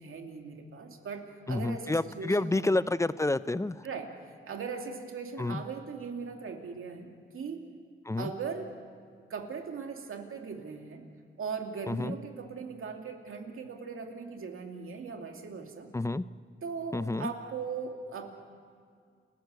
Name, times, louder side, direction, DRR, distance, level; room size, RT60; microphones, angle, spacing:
voice 1, 0.0-2.7 3.8-4.1 4.5-7.6 8.2-8.7 9.3-11.1 11.4-15.9 16.6-18.3, right 5 dB, 80° right, 3 dB, 2.6 m, -39 dB
voice 2, 1.5-3.9 5.4-5.6 8.0-8.3 11.9-12.1 15.9-16.2 16.9-17.3, left 2 dB, 15° left, 15 dB, 0.6 m, -29 dB
29.5 x 14.5 x 8.2 m, 2.1 s
cardioid pair, 80°, 21 cm